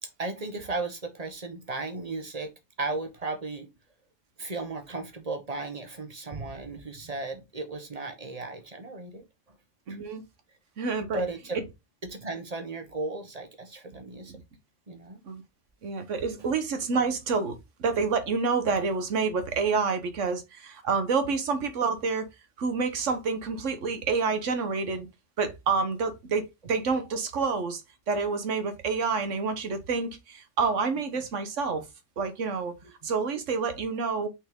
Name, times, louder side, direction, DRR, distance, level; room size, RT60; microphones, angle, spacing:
voice 1, 0.0-2.5 2.8-3.7 4.4-9.2 9.9-10.0 11.1-11.6 12.0-14.3 14.9-15.2 16.4-16.5, right 3 dB, 35° right, 1.3 m, -35 dB
voice 2, 9.9-10.2 10.8-11.2 14.3-14.4 15.2-15.4 15.8-22.3 22.6-25.1 25.4-27.8 28.1-31.8 32.2-32.7 33.0-34.3, right 4 dB, 90° right, 1.4 m, -28 dB
5.9 x 4.3 x 3.7 m
omnidirectional pair, 1.2 m